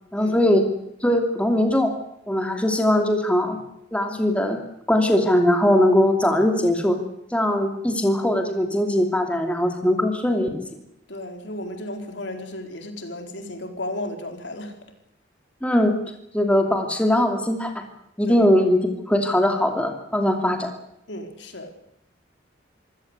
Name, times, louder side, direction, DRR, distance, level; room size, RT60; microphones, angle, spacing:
voice 1, 0.1-0.6 1.0-1.9 2.3-3.6 3.9-4.6 4.9-7.0 7.3-10.6 15.6-16.0 16.3-17.8 18.2-20.7, left 1 dB, 5° left, 4 dB, 2.8 m, -20 dB
voice 2, 11.1-14.8 18.2-18.5 21.1-21.7, left 1 dB, 65° left, 5 dB, 4.5 m, -34 dB
26.0 x 16.5 x 8.2 m, 0.81 s
head